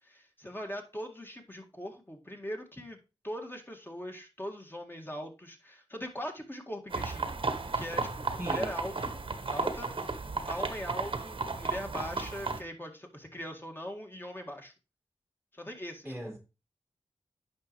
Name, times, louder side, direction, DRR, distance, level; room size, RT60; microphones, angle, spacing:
voice 1, 0.0-3.0 3.2-9.2 9.5-10.1 10.5-14.7 15.5-16.3, equal, 20° left, 1.9 m, -41 dB
sound 1, 6.9-12.6, right 3 dB, 55° right, 1.1 m, -34 dB
voice 2, 8.4-8.7 16.0-16.4, equal, ahead, 1.5 m, -38 dB
9.4 x 5.4 x 3.1 m
cardioid pair, 40°, 11 cm